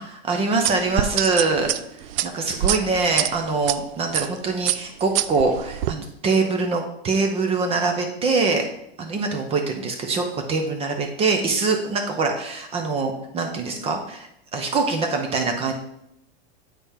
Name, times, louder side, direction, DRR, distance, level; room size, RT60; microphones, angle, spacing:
voice 1, 0.0-1.7 2.2-8.6 9.0-15.7, right 3 dB, 20° right, 4 dB, 0.6 m, -24 dB
sound 1, 0.6-3.8 4.1-4.4 4.7-5.9, right 13 dB, 70° right, 0.5 m, -25 dB
9.0 x 4.3 x 3.5 m, 0.79 s
supercardioid pair, 155°, 31 cm